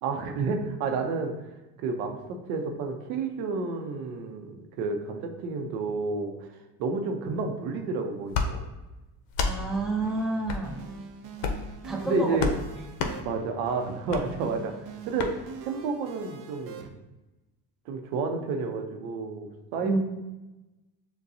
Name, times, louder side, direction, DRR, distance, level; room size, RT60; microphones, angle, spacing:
voice 1, 0.0-1.3 1.8-6.5 6.8-8.6 12.0-12.5 13.2-14.7 15.1-16.9 17.9-20.0, right 4 dB, 80° right, 4 dB, 0.7 m, -30 dB
sound 1, 8.3-8.5 9.3-9.6 10.4-10.6 11.4-11.7 12.4-12.6 13.0-13.2 14.1-14.2 15.2-15.3, left 4 dB, 65° left, 0.7 m, -28 dB
voice 2, 9.4-10.8 11.8-12.4 19.8-20.0, right 2 dB, ahead, 1 dB, 0.5 m, -29 dB
sound 2, 9.5-16.9, right 5 dB, 50° right, 0.6 m, -44 dB
6.7 x 2.2 x 2.6 m, 1.1 s
supercardioid pair, 85°, 49 cm